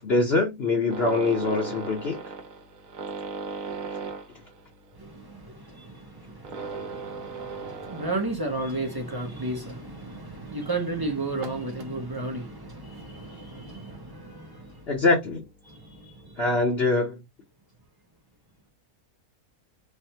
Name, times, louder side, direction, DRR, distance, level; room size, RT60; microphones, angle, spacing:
voice 1, 0.0-2.2 14.9-15.4 16.4-17.2, left 3 dB, 50° left, 0.9 m, -23 dB
sound 1, 0.9-8.7 9.0-9.3 9.8-9.9 10.2-10.3 11.3-11.9 13.2-13.4 13.8-14.2 14.9-15.0 15.3-15.4 15.6-15.7, right 5 dB, 70° right, 1.1 m, -38 dB
voice 2, 5.0-15.0 15.7-16.4, right 2 dB, 40° right, 0.3 m, -34 dB
3.4 x 2.1 x 2.7 m
omnidirectional pair, 1.6 m